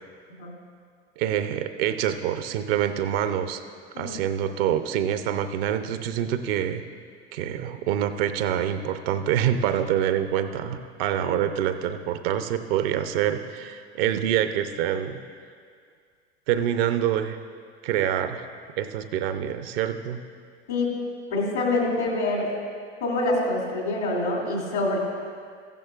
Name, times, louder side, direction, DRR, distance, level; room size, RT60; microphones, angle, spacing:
voice 1, 1.2-3.6 4.0-6.8 7.3-15.2 16.5-17.4 17.8-18.5 18.8-20.2, right 10 dB, 60° right, 9 dB, 0.7 m, -26 dB
voice 2, 21.3-22.5 23.0-25.0, left 2 dB, 85° left, -2 dB, 2.8 m, -26 dB
15.0 x 10.5 x 2.4 m, 2.1 s
figure-of-eight pair, 80°, 33 cm